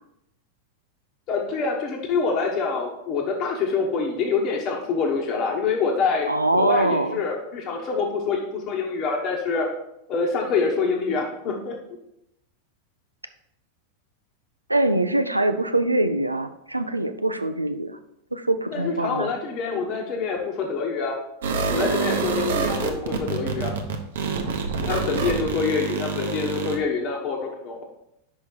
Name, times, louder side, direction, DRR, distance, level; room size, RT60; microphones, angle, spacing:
voice 1, 1.3-9.7 10.1-11.7 18.7-21.2 21.7-23.7 24.9-27.8, left 5 dB, 35° left, 0 dB, 1.1 m, -26 dB
voice 2, 6.3-7.2 14.7-18.0 18.3-19.3, right 2 dB, 85° right, 9 dB, 0.5 m, -23 dB
sound 1, 21.4-26.8, right 5 dB, 60° right, 0.8 m, -26 dB
5.7 x 5.4 x 4.5 m, 0.79 s
figure-of-eight pair, 90°, 0 cm